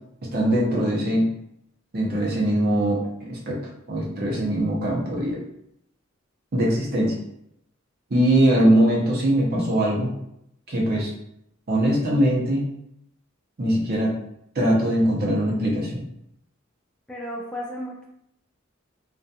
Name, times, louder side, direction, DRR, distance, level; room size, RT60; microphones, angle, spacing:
voice 1, 0.3-1.3 1.9-3.6 3.9-5.4 6.5-7.2 8.1-10.1 10.7-11.1 11.7-12.6 13.6-14.2 14.5-16.0, right 1 dB, 50° right, -3 dB, 0.7 m, -21 dB
voice 2, 17.1-18.0, equal, 5° left, -4 dB, 0.3 m, -33 dB
2.4 x 2.3 x 2.7 m, 0.78 s
head